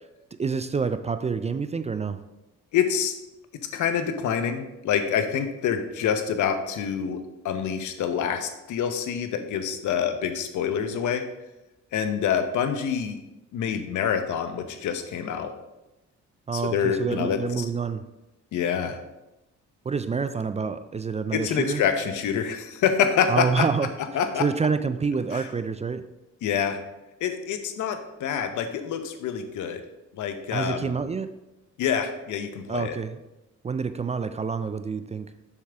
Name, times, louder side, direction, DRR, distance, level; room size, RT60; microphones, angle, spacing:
voice 1, 0.4-2.2 16.5-18.0 19.9-21.8 23.3-23.9 24.4-26.1 30.5-31.3 32.7-33.2 33.6-35.3, right 5 dB, 25° right, 11 dB, 0.4 m, -27 dB
voice 2, 2.7-3.1 3.7-11.2 11.9-13.2 13.5-15.5 16.5-17.6 18.5-19.0 21.3-23.7 24.1-24.4 25.3-25.5 26.4-26.8 27.2-29.8 30.2-31.0 31.8-33.0, left 7 dB, 75° left, 8 dB, 0.9 m, -26 dB
7.2 x 6.4 x 3.5 m, 0.98 s
cardioid pair, 90°, 30 cm